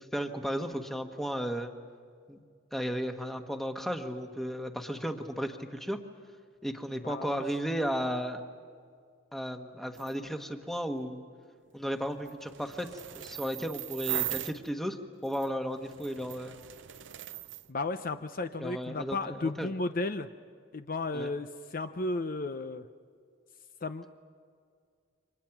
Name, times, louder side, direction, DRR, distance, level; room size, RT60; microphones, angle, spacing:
voice 1, 0.0-1.7 2.3-2.4 2.7-6.0 6.6-8.4 9.3-11.2 11.7-12.9 13.2-15.0 15.2-16.6 18.6-19.7 21.1-21.3, equal, ahead, 5 dB, 1.3 m, -34 dB
voice 2, 6.9-7.4 17.7-20.3 20.7-22.9 23.8-24.1, left 2 dB, 45° left, 9 dB, 0.7 m, -34 dB
sound 1, 9.9-10.1 11.8-14.7 15.2-17.7, right 13 dB, 65° right, 0.6 m, -39 dB
29.5 x 25.0 x 6.0 m, 2.1 s
head